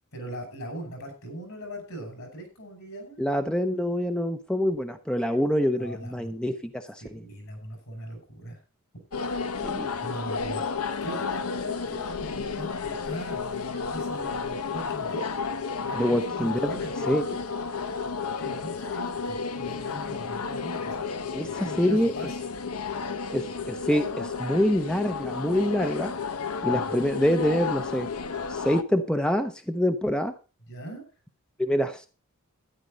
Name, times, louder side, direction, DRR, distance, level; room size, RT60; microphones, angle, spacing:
voice 1, 0.1-3.5 5.8-6.4 7.0-8.6 8.9-9.0 9.5-9.7 10.0-10.6 11.0-15.3 15.8-17.2 18.4-21.0 21.6-22.4 26.7-27.1 30.7-31.0, right 1 dB, 65° left, 4 dB, 6.4 m, -40 dB
voice 2, 3.2-7.2 9.6-9.9 15.9-16.7 17.0-17.2 21.3-22.1 23.3-26.1 26.6-28.1 28.5-30.3 31.6-32.1, equal, 5° left, 7 dB, 0.7 m, -26 dB
sound 1, 9.1-28.8, left 5 dB, 90° left, 0.9 m, -32 dB
12.5 x 10.5 x 3.9 m, 0.32 s
head